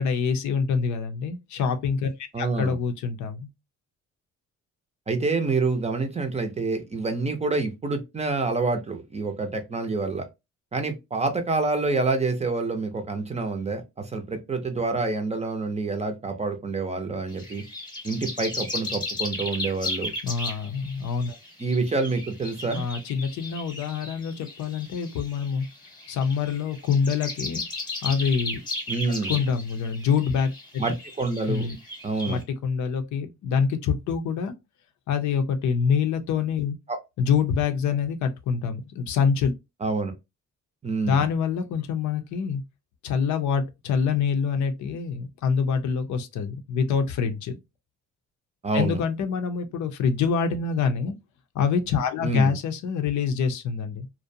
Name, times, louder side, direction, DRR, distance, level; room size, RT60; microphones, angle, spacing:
voice 1, 0.0-2.1 2.4-3.5 20.2-21.4 22.7-25.7 26.1-27.6 28.0-28.6 29.3-30.8 31.5-31.8 32.3-34.5 35.1-36.8 37.2-39.5 41.0-42.6 43.0-47.6 48.7-51.1 51.5-54.1, left 6 dB, 70° left, 0.6 m, -25 dB
voice 2, 2.3-2.8 5.1-10.3 10.7-17.6 18.0-20.1 21.6-22.8 28.9-29.4 30.8-31.7 32.0-32.4 36.9-37.0 39.8-40.1 40.8-41.2 48.6-49.0 52.2-52.5, right 3 dB, 20° right, 0.5 m, -27 dB
sound 1, 17.3-32.4, left 2 dB, 15° left, 0.9 m, -36 dB
2.5 x 2.1 x 2.6 m
cardioid pair, 90°, 30 cm